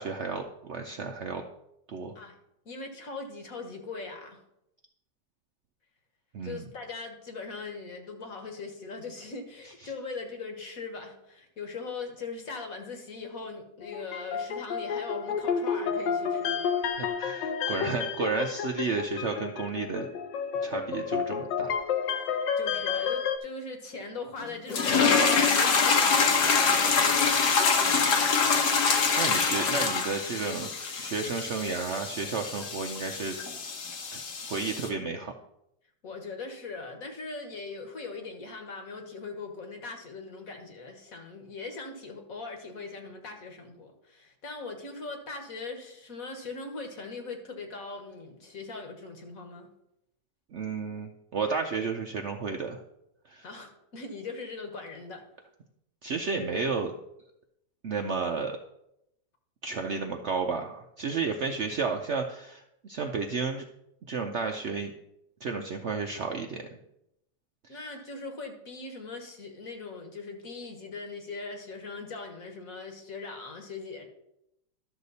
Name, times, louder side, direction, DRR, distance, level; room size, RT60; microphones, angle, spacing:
voice 1, 0.0-1.4 1.9-2.1 6.3-6.7 17.0-20.1 20.6-21.7 29.1-33.4 34.1-34.2 34.5-35.3 50.5-52.8 53.3-53.4 56.0-56.9 57.8-58.6 59.6-63.6 64.1-64.9 65.4-66.6 67.7-67.8, right 4 dB, 70° right, 4 dB, 0.6 m, -32 dB
voice 2, 2.6-4.4 6.4-16.6 22.6-28.5 36.0-49.7 53.4-55.2 67.7-74.0, left 3 dB, 55° left, 4 dB, 1.7 m, -40 dB
sound 1, 13.8-23.4, left 6 dB, 85° left, 1.5 m, -31 dB
sound 2, 24.7-34.9, left 5 dB, 70° left, 1.7 m, -25 dB
12.0 x 6.6 x 4.0 m, 0.82 s
omnidirectional pair, 1.9 m